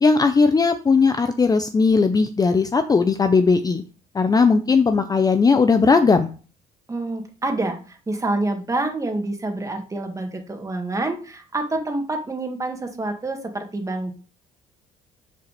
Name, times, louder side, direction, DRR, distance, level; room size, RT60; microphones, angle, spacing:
voice 1, 0.0-3.8 4.1-6.3, left 4 dB, 20° left, 9 dB, 0.6 m, -18 dB
voice 2, 6.9-14.1, right 2 dB, 20° right, 4 dB, 1.9 m, -27 dB
6.4 x 4.8 x 6.6 m, 0.37 s
cardioid pair, 110°, 17 cm